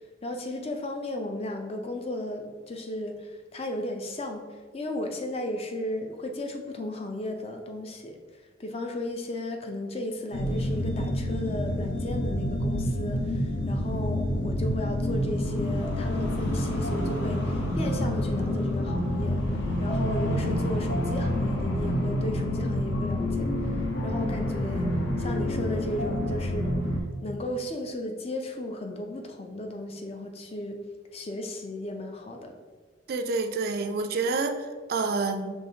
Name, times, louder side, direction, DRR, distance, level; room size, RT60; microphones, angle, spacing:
voice 1, 0.2-4.5 4.7-8.2 8.6-19.4 19.8-24.9 25.2-26.8 27.2-30.8 31.1-32.5, left 1 dB, 30° left, 4 dB, 0.4 m, -35 dB
sound 1, 10.3-27.0, left 1 dB, 60° left, 0.7 m, -28 dB
voice 2, 33.1-35.5, right 3 dB, 50° right, 7 dB, 0.3 m, -28 dB
5.6 x 3.4 x 2.7 m, 1.5 s
head